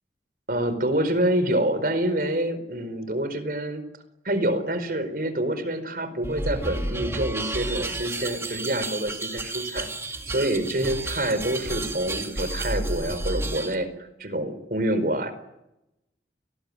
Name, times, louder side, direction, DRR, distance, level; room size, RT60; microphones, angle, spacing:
voice 1, 0.5-3.8 4.2-9.9 10.3-13.9 14.2-15.3, right 1 dB, 55° right, 11 dB, 4.6 m, -26 dB
sound 1, 6.2-13.8, right 2 dB, 15° right, 2.1 m, -31 dB
29.5 x 20.5 x 9.9 m, 0.90 s
head